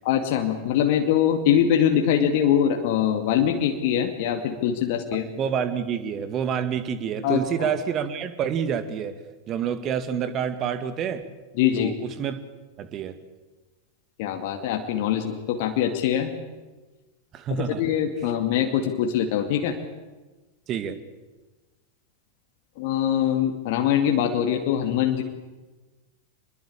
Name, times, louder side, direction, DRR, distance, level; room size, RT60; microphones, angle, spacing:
voice 1, 0.0-5.3 7.2-7.7 11.6-11.9 14.2-16.3 17.6-19.8 22.8-25.2, left 9 dB, 50° left, 4 dB, 2.3 m, -23 dB
voice 2, 5.1-9.2 9.5-11.2 11.8-12.4 12.8-13.2 17.3-17.8 20.7-21.0, right 8 dB, 30° right, 11 dB, 2.2 m, -28 dB
26.5 x 21.5 x 8.8 m, 1.2 s
figure-of-eight pair, 90°, 0 cm